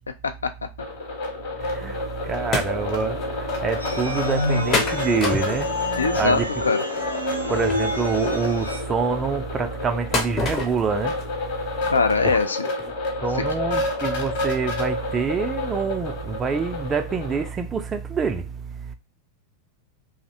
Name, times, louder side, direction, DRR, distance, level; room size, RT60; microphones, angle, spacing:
sound 1, 0.8-17.5, left 2 dB, 45° left, 1.0 m, -30 dB
voice 1, 1.6-6.4 6.8-6.9 7.5-11.7 12.2-12.4 12.8-12.9 13.2-18.9, right 5 dB, 20° right, 0.3 m, -26 dB
sound 2, 2.5-2.7 3.2-3.3 3.5-3.6 4.7-6.0 7.7-7.8 10.1-10.9 11.2-11.3 11.9-12.0 12.5-12.6 12.8-12.9, left 3 dB, 25° left, 0.6 m, -25 dB
sound 3, 3.8-8.8, left 1 dB, 90° right, 0.4 m, -28 dB
voice 2, 6.0-6.4 6.7-6.8 11.9-12.7, left 4 dB, 75° left, 0.3 m, -21 dB
2.6 x 2.0 x 2.6 m
figure-of-eight pair, 90°, 0 cm